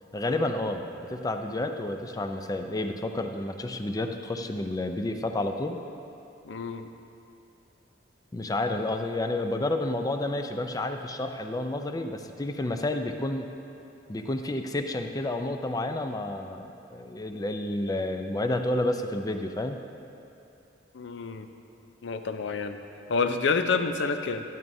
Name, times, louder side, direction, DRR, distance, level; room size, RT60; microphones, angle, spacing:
voice 1, 0.1-5.8 8.3-13.5 14.1-19.8, left 2 dB, 20° left, 6 dB, 0.4 m, -30 dB
voice 2, 6.5-6.9 20.9-21.5 22.0-22.8 23.1-24.4, left 4 dB, 70° left, 8 dB, 0.5 m, -28 dB
12.0 x 10.5 x 2.7 m, 2.7 s
head